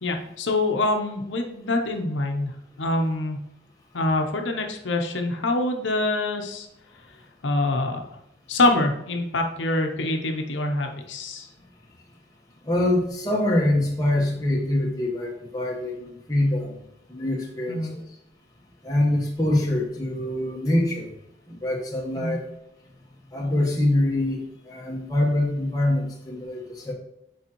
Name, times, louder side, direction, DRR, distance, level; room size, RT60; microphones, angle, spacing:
voice 1, 0.0-3.4 3.9-6.7 7.4-8.0 8.5-11.5 17.7-17.9 22.2-22.4, left 2 dB, 90° left, 4 dB, 0.8 m, -25 dB
voice 2, 12.6-16.8 17.1-18.0 18.8-21.1 21.5-22.4 23.3-24.4 24.6-26.9, left 1 dB, 20° left, -2 dB, 1.1 m, -24 dB
6.8 x 4.8 x 3.0 m, 0.81 s
head